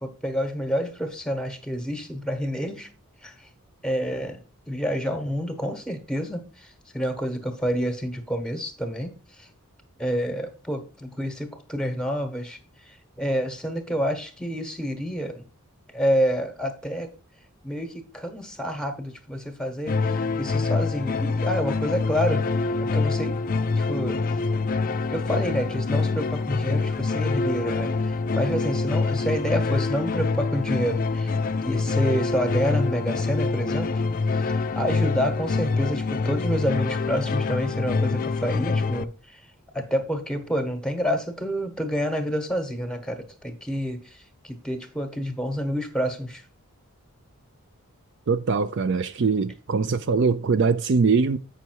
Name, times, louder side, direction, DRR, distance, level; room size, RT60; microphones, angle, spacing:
voice 1, 0.0-2.9 3.2-3.5 3.8-9.5 10.0-12.6 12.9-15.5 15.9-17.1 17.6-22.4 22.8-23.4 23.8-24.4 25.1-31.3 31.6-33.9 34.3-39.4 39.7-46.4, equal, 5° left, 1.1 m, -28 dB
sound 1, 19.9-39.0, left 3 dB, 40° left, 0.4 m, -25 dB
voice 2, 48.3-51.4, right 4 dB, 50° right, 0.4 m, -22 dB
8.3 x 5.6 x 4.5 m
head